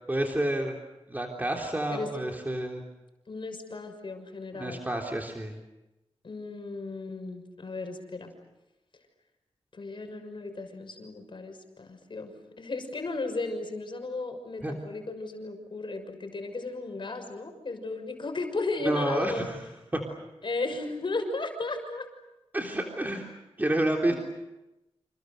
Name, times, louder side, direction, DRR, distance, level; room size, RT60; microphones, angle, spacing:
voice 1, 0.1-0.8 1.1-2.8 4.5-5.6 14.6-14.7 18.8-19.6 19.9-20.0 22.5-23.3 23.6-24.2, right 1 dB, 15° right, 0 dB, 3.5 m, -29 dB
voice 2, 3.3-4.9 6.2-8.3 9.7-12.3 12.6-19.5 20.4-22.1 24.0-24.2, left 3 dB, 50° left, 5 dB, 6.3 m, -35 dB
29.0 x 28.0 x 6.7 m, 0.98 s
wide cardioid pair, 100°, 11 cm